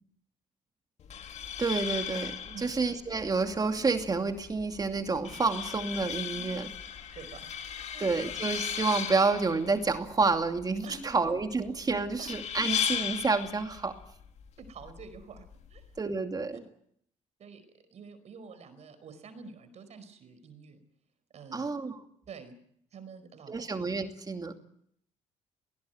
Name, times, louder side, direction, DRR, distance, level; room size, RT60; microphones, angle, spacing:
sound 1, 1.0-16.0, left 9 dB, 60° left, 2.4 m, -37 dB
voice 1, 1.6-6.7 8.0-14.0 16.0-16.6 21.5-21.9 23.5-24.5, right 4 dB, 30° right, 6 dB, 2.5 m, -29 dB
voice 2, 7.1-7.5 7.9-8.1 10.8-11.1 12.2-12.3 14.6-15.9 16.5-16.6 17.4-20.8 21.3-21.7 22.3-22.5 22.9-23.5, right 5 dB, 60° right, 11 dB, 5.0 m, -48 dB
21.0 x 19.0 x 9.5 m, 0.70 s
supercardioid pair, 75°, 13 cm